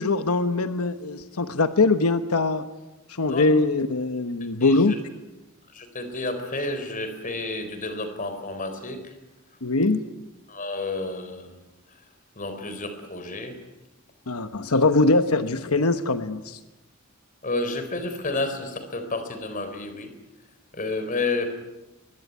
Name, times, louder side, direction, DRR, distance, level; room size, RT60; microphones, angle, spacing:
voice 1, 0.0-2.6 3.1-5.0 9.6-10.1 14.3-16.6, left 3 dB, 85° left, 9 dB, 1.1 m, -22 dB
voice 2, 4.6-5.0 5.7-9.1 10.5-11.5 11.9-12.0 12.4-13.6 17.4-20.1 20.7-21.5, left 2 dB, 40° left, 8 dB, 4.0 m, -30 dB
23.0 x 21.5 x 9.5 m, 1.0 s
head